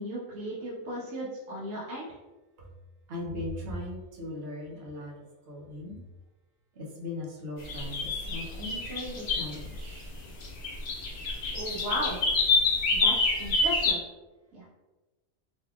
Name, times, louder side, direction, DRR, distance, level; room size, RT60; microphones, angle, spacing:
voice 1, 0.0-2.1 11.5-12.2 12.9-14.0 14.5-14.7, equal, 85° right, -7 dB, 1.1 m, -35 dB
voice 2, 3.1-5.1 5.5-6.0 6.7-10.1, left 1 dB, 55° right, -2 dB, 0.9 m, -38 dB
sound 1, 7.7-9.7 10.4-13.9, left 3 dB, 60° left, 0.9 m, -26 dB
3.5 x 2.7 x 2.3 m, 1.2 s
omnidirectional pair, 1.4 m